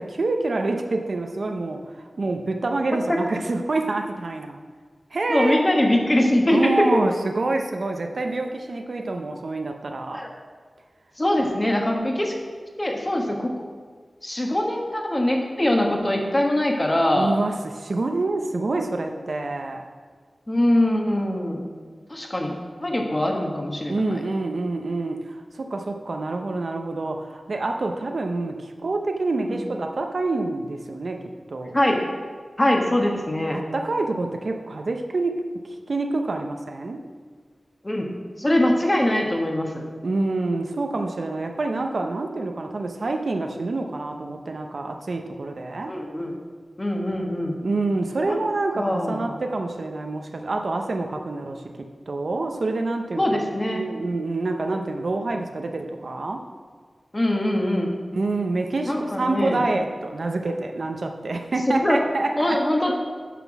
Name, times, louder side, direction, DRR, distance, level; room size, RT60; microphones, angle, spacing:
voice 1, 0.0-1.8 2.2-4.6 5.1-5.7 6.5-10.2 17.1-19.8 23.9-31.2 31.5-31.8 33.5-35.5 35.9-37.0 40.0-45.9 47.6-51.6 52.1-53.2 53.7-56.4 58.1-62.6, right 2 dB, 65° right, 4 dB, 0.8 m, -27 dB
voice 2, 5.3-7.0 10.1-10.3 11.2-12.3 12.8-13.5 14.2-17.3 20.5-21.7 22.1-22.5 22.8-24.2 29.5-29.6 31.7-32.0 32.6-33.6 37.8-38.0 38.4-39.8 45.8-46.3 46.8-47.6 48.3-48.4 48.7-49.3 53.2-53.8 57.1-57.9 58.9-59.6 61.7-62.0 62.4-62.9, left 1 dB, 25° left, 1 dB, 1.5 m, -22 dB
9.2 x 6.0 x 6.1 m, 1.6 s
wide cardioid pair, 90°, 0 cm